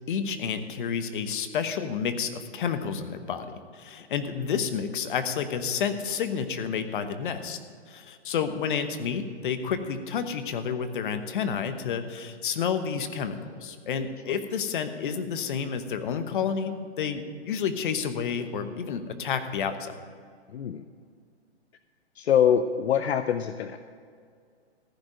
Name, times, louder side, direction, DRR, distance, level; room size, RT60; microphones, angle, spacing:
voice 1, 0.1-7.6 7.9-19.9, left 7 dB, 50° left, 9 dB, 1.1 m, -30 dB
voice 2, 20.5-20.8 22.2-23.8, left 8 dB, 70° left, 10 dB, 0.6 m, -24 dB
15.0 x 5.0 x 9.0 m, 2.1 s
hypercardioid pair, 155°, 34 cm